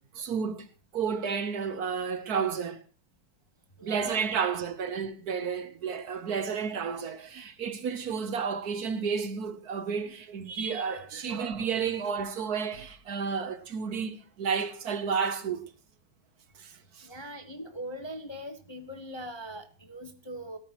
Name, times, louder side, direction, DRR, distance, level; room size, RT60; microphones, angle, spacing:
voice 1, 0.1-0.7 0.9-2.8 3.8-15.7 16.6-17.1, right 6 dB, 60° right, 1.3 m, -31 dB
voice 2, 3.8-4.3 17.0-20.6, equal, 20° left, 0.8 m, -41 dB
18.0 x 13.5 x 3.0 m
omnidirectional pair, 2.0 m